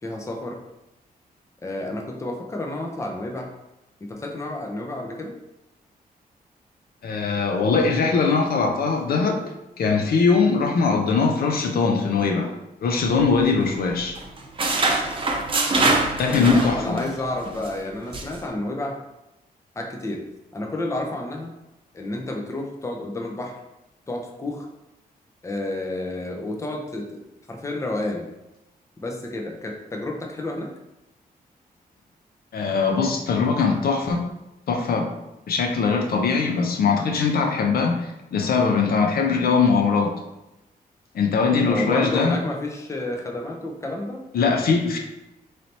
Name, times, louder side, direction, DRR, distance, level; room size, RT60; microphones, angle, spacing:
voice 1, 0.0-0.6 1.6-3.5 4.0-5.4 16.3-19.0 19.8-20.2 20.5-21.5 21.9-23.6 24.1-24.7 25.4-28.3 29.0-30.7 41.6-44.3, left 2 dB, 20° left, 2 dB, 0.6 m, -30 dB
voice 2, 7.0-9.4 9.8-12.5 12.8-14.2 16.2-17.1 32.5-34.2 34.7-35.1 35.5-40.1 41.1-42.4 44.3-45.0, left 4 dB, 70° left, 2 dB, 0.6 m, -21 dB
sound 1, 13.0-13.9 14.1-17.1 17.4-17.7 18.1-18.4, right 2 dB, 35° right, 0.6 m, -24 dB
3.3 x 2.8 x 4.1 m, 0.93 s
cardioid pair, 110°, 16 cm